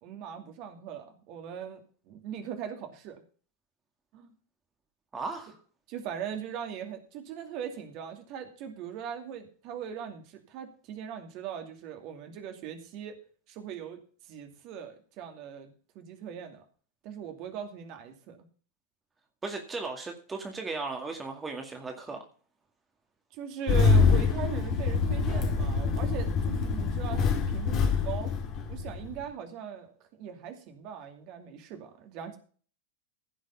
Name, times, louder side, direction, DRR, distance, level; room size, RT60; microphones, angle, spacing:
voice 1, 0.0-3.2 4.1-4.3 5.9-13.2 13.5-16.6 17.0-18.4 23.3-28.3 28.7-32.4, right 8 dB, 40° right, 5 dB, 2.5 m, -40 dB
voice 2, 5.1-5.6 19.4-22.3, right 3 dB, 15° right, 3 dB, 2.1 m, -36 dB
Engine starting, 23.7-29.2, left 5 dB, 35° left, 2.2 m, -25 dB
16.0 x 6.4 x 5.7 m, 0.41 s
figure-of-eight pair, 90°, 0 cm